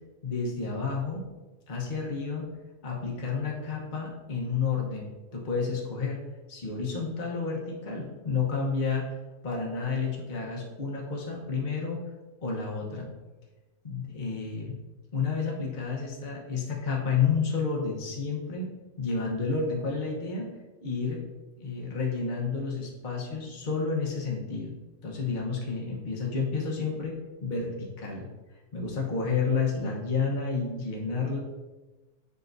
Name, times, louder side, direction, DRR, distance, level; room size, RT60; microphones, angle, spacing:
voice 1, 0.2-1.3 1.7-2.5 2.8-6.2 6.5-9.1 9.4-12.0 12.4-13.1 13.8-14.8 15.1-20.5 20.8-21.2 21.6-24.7 25.0-27.2 27.4-28.3 28.7-31.4, left 5 dB, 35° left, -2 dB, 1.1 m, -30 dB
7.4 x 5.2 x 2.6 m, 1.2 s
omnidirectional pair, 1.6 m